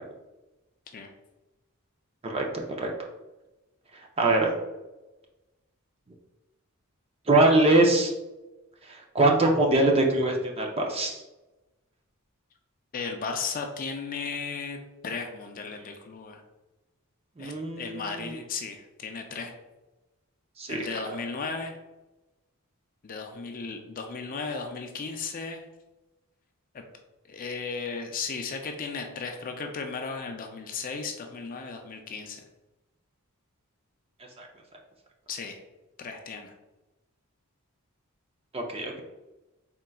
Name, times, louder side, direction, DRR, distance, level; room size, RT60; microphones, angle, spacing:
voice 1, 2.3-2.9 4.2-4.5 7.3-8.1 9.1-11.2 17.4-18.1 20.6-20.8 34.4-34.5 38.5-39.0, right 2 dB, 25° right, 1 dB, 0.5 m, -22 dB
voice 2, 12.9-14.8 15.0-16.4 17.4-19.5 20.7-21.8 23.0-25.7 26.7-26.8 27.3-32.4 35.3-35.6 36.0-36.5, left 5 dB, 40° left, 4 dB, 0.4 m, -35 dB
4.4 x 3.7 x 2.3 m, 1.1 s
head